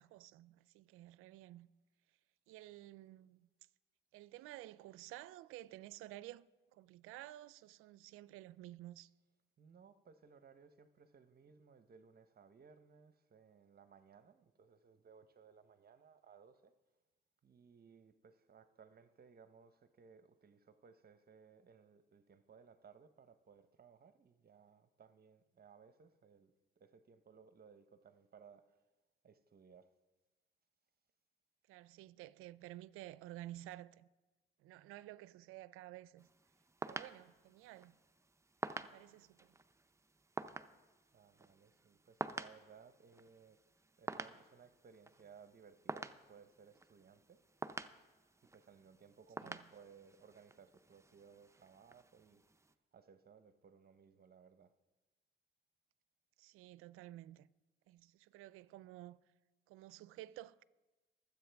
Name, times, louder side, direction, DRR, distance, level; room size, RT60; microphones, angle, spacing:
voice 1, 0.0-1.7 2.5-3.5 4.1-9.1 31.7-34.1 34.6-36.3 36.8-38.0 38.9-39.6 49.4-49.7 56.4-57.5 57.9-59.2 59.7-60.6, right 15 dB, 85° right, 0.4 m, -53 dB
voice 2, 9.6-16.7 17.4-28.8 29.2-29.9 41.1-43.6 44.0-47.4 48.5-52.4 52.9-54.7, right 6 dB, 45° right, 0.9 m, -62 dB
sound 1, 36.2-52.7, right 3 dB, 15° right, 0.6 m, -49 dB
24.0 x 8.2 x 3.5 m
supercardioid pair, 60°, 21 cm